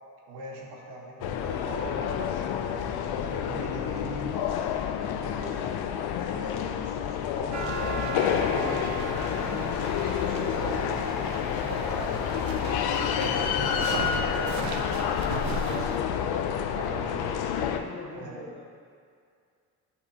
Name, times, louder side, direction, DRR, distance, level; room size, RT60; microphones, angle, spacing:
voice 1, 0.3-4.5 5.2-8.8 9.5-9.7 10.2-11.3 11.6-15.9 16.7-17.6 18.1-18.5, right 2 dB, 70° right, -2 dB, 1.5 m, -40 dB
sound 1, 1.2-17.8, left 8 dB, 65° left, 0.6 m, -29 dB
voice 2, 5.0-5.4 16.7-17.1 17.5-18.6, left 3 dB, 25° left, -2 dB, 1.4 m, -44 dB
sound 2, 7.5-16.0, right 4 dB, 45° right, 0.7 m, -36 dB
8.5 x 5.6 x 2.9 m, 2.2 s
hypercardioid pair, 65°, 41 cm